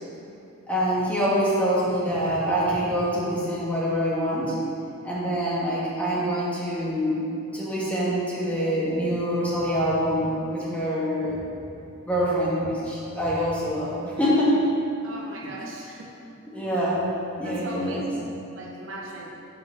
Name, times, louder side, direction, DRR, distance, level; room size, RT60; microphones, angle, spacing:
voice 1, 0.7-4.6 5.0-7.2 7.5-11.4 12.0-14.5 16.5-17.1 17.4-18.1, equal, 5° left, -8 dB, 1.5 m, -25 dB
voice 2, 15.0-16.1 17.6-18.0 18.6-19.3, right 2 dB, 65° right, -1 dB, 0.9 m, -39 dB
5.8 x 5.4 x 5.6 m, 2.8 s
head